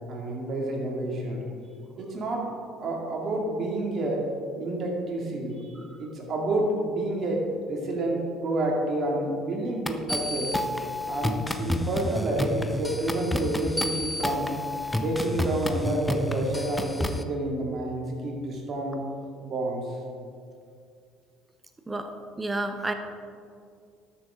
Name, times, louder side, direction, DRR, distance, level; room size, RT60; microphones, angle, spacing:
voice 1, 0.1-1.4 2.0-2.5 2.8-4.2 4.6-10.6 11.1-14.5 14.9-19.0 19.4-19.8, right 1 dB, 50° right, -1 dB, 2.3 m, -29 dB
sound 1, 9.9-17.2, left 1 dB, 10° left, 0.7 m, -30 dB
voice 2, 22.4-22.9, right 2 dB, 20° right, 7 dB, 1.1 m, -30 dB
12.5 x 6.9 x 3.7 m, 2.3 s
hypercardioid pair, 65°, 0 cm